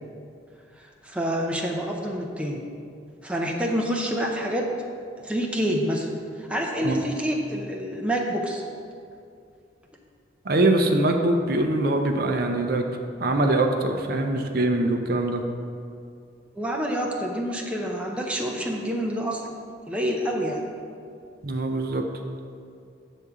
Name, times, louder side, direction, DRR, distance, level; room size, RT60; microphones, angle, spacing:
voice 1, 0.8-2.6 3.2-4.7 5.2-6.1 6.4-8.6 16.6-19.5 19.9-20.6, equal, 5° right, 0 dB, 0.6 m, -27 dB
voice 2, 10.4-12.9 13.2-15.4 21.4-22.0, right 2 dB, 50° right, 4 dB, 0.6 m, -23 dB
8.2 x 3.6 x 6.8 m, 2.4 s
head